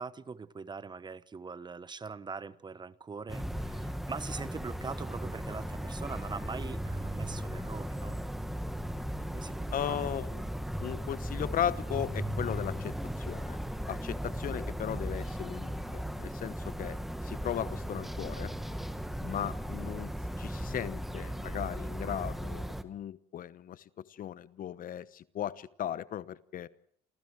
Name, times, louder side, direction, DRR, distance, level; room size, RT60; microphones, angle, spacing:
voice 1, 0.0-8.2 9.3-10.2 10.4-10.6, right 5 dB, 25° right, 17 dB, 1.2 m, -42 dB
sound 1, 3.3-22.8, equal, ahead, 1.8 m, -37 dB
voice 2, 9.7-10.4 10.8-13.6 13.9-17.0 17.2-18.5 19.2-20.1 20.4-23.8 24.1-26.7, left 10 dB, 55° left, 17 dB, 1.1 m, -37 dB
28.0 x 28.0 x 4.8 m, 0.63 s
cardioid pair, 110°, 17 cm